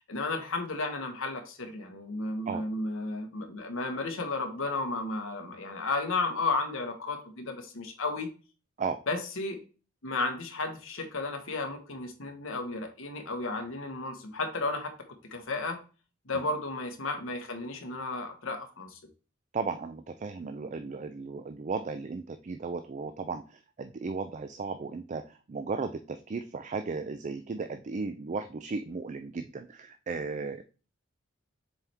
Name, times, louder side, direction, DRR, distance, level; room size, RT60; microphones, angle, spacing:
voice 1, 0.1-8.3 9.1-9.6 10.0-14.9 15.2-15.8 16.2-19.0, left 3 dB, 70° left, 5 dB, 1.3 m, -33 dB
voice 2, 19.5-30.6, right 4 dB, 35° right, 8 dB, 0.4 m, -35 dB
7.0 x 4.4 x 3.4 m, 0.36 s
head